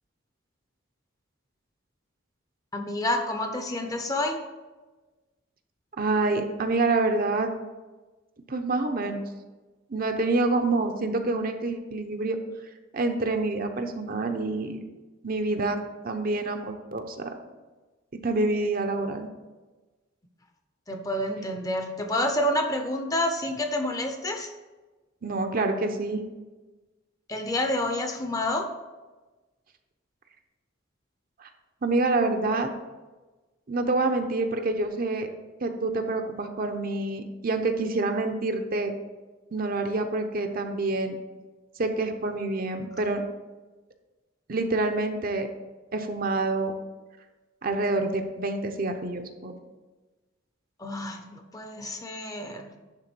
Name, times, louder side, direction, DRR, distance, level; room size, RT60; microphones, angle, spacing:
voice 1, 2.7-4.4 20.9-24.5 27.3-28.7 50.8-52.7, left 1 dB, 15° left, 5 dB, 0.7 m, -28 dB
voice 2, 6.0-7.5 8.5-9.2 9.9-12.4 12.9-14.8 15.2-15.8 16.0-17.3 18.2-19.3 25.2-26.2 31.4-31.5 31.8-32.7 33.7-35.3 35.6-38.9 39.5-41.2 41.8-43.2 44.5-45.5 45.9-46.7 47.6-49.5, right 2 dB, 45° right, 5 dB, 0.8 m, -27 dB
10.5 x 3.7 x 6.1 m, 1.2 s
head